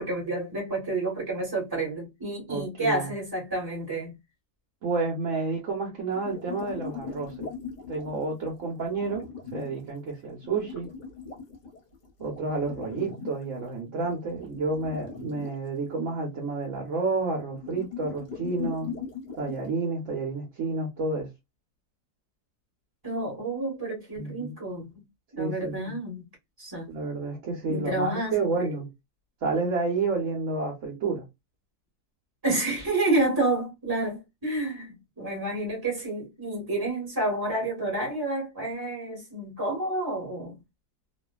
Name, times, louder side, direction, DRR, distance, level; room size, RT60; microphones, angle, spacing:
voice 1, 0.0-4.1 23.0-25.0 25.3-26.3 26.6-26.9 27.7-28.7 32.4-40.6, right 2 dB, 15° right, 1.2 m, -29 dB
voice 2, 2.5-3.1 4.8-7.5 7.9-10.9 12.2-18.9 19.4-21.3 24.2-24.5 25.4-26.0 26.9-28.9 29.4-31.3, right 3 dB, 55° right, 1.2 m, -30 dB
sound 1, 6.1-9.8 10.4-13.4 14.0-15.5 17.5-19.7, left 5 dB, 40° left, 0.8 m, -39 dB
2.7 x 2.5 x 2.2 m
omnidirectional pair, 1.7 m